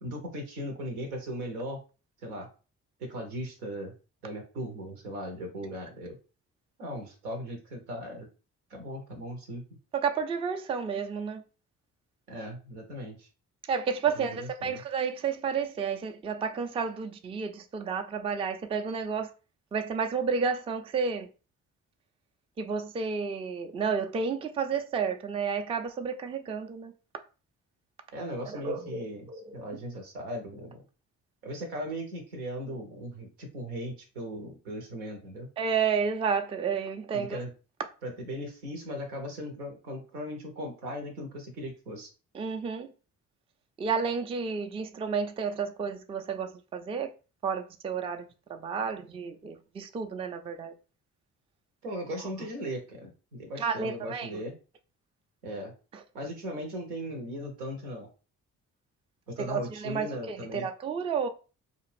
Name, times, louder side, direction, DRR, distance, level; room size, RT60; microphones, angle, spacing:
voice 1, 0.0-1.8 2.2-2.5 3.0-3.9 4.2-6.2 6.8-8.3 8.7-9.6 12.3-13.3 14.2-14.8 28.1-29.3 29.5-30.8 31.4-35.5 37.1-37.5 38.0-42.1 51.8-54.6 55.4-55.7 56.1-58.1 59.3-60.7, equal, 85° right, 0.8 m, -38 dB
voice 2, 9.9-11.4 13.7-19.3 19.7-21.3 22.6-26.9 28.5-29.6 35.6-37.4 42.3-42.9 43.8-47.1 47.4-48.2 48.5-50.7 53.6-54.4 55.9-56.0 59.4-61.3, right 6 dB, 15° right, 0.3 m, -31 dB
2.5 x 2.4 x 3.2 m
hypercardioid pair, 40°, 44 cm